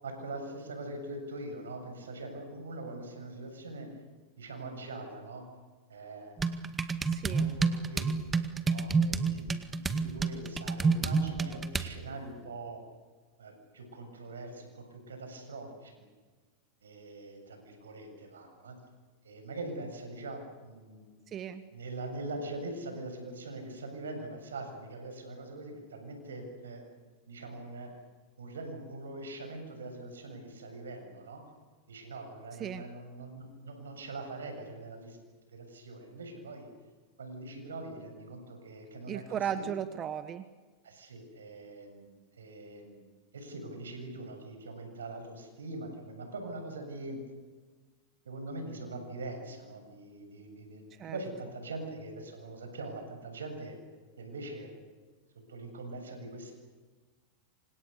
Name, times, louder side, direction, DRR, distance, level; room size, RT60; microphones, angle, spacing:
voice 1, 0.0-3.9 4.4-5.4 5.9-6.4 6.9-7.0 7.3-8.0 8.3-12.8 13.4-16.0 16.8-18.8 19.2-21.1 21.7-27.9 28.4-31.4 31.9-35.2 35.5-36.7 37.2-39.6 40.8-43.1 43.3-47.2 48.2-53.8 54.2-54.7 55.5-56.5, right 2 dB, 85° right, 5 dB, 7.4 m, -42 dB
sound 1, 6.4-11.9, right 4 dB, 20° right, 2.0 m, -30 dB
voice 2, 7.1-7.5 21.3-21.6 32.6-32.8 39.1-40.4 51.0-51.2, right 9 dB, 35° right, 12 dB, 1.5 m, -35 dB
28.0 x 26.0 x 6.9 m, 1.4 s
hypercardioid pair, 95°, 0 cm